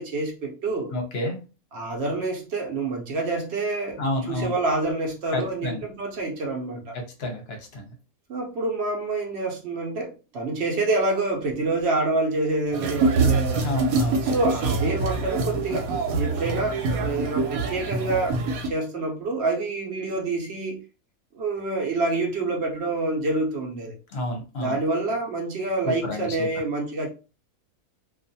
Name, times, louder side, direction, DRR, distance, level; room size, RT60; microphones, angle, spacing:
voice 1, 0.0-0.9 1.7-4.0 4.3-7.0 8.3-13.6 14.2-15.9 16.2-18.4 18.6-20.8 21.3-24.0 24.6-27.1, right 2 dB, 60° right, 0.8 m, -27 dB
voice 2, 0.9-1.4 4.0-4.6 5.3-5.8 7.2-7.9 13.6-14.3 24.1-24.8 25.8-26.5, left 1 dB, 55° left, 0.8 m, -29 dB
sound 1, 12.7-18.7, right 3 dB, 85° right, 1.1 m, -25 dB
2.4 x 2.3 x 2.6 m
omnidirectional pair, 1.5 m